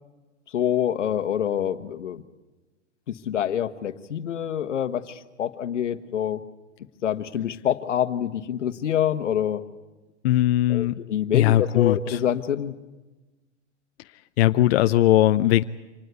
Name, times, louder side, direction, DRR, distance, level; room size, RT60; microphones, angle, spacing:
voice 1, 0.5-2.2 3.2-6.4 7.0-9.6 10.7-12.7, left 10 dB, 85° left, 11 dB, 1.5 m, -26 dB
voice 2, 10.2-11.0 11.3-12.2 14.4-15.6, left 14 dB, 60° left, 10 dB, 0.8 m, -19 dB
26.0 x 19.5 x 8.3 m, 1.2 s
hypercardioid pair, 125°, 35 cm